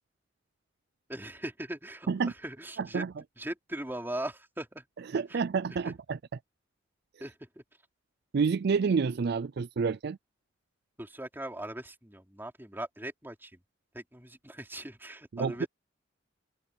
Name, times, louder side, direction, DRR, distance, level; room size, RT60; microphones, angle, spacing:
voice 1, 1.1-3.0 3.4-4.9 5.3-5.4 5.8-5.9 7.2-7.6 11.0-13.6 13.9-15.7, right 1 dB, 10° right, 4.2 m, -40 dB
voice 2, 2.8-3.1 5.1-6.2 8.3-10.2 15.3-15.7, right 5 dB, 55° right, 0.4 m, -28 dB
head